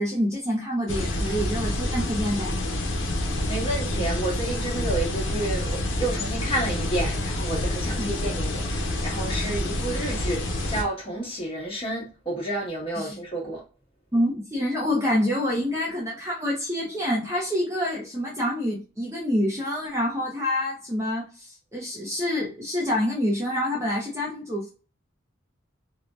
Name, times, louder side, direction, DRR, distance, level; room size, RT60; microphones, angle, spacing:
voice 1, 0.0-2.6 7.9-8.1 12.9-13.2 14.1-24.7, left 1 dB, 15° right, 0.5 m, -27 dB
sound 1, 0.9-10.8, left 1 dB, 75° left, 0.6 m, -28 dB
voice 2, 3.5-13.6, right 1 dB, 30° left, 1.1 m, -30 dB
2.7 x 2.1 x 3.2 m
head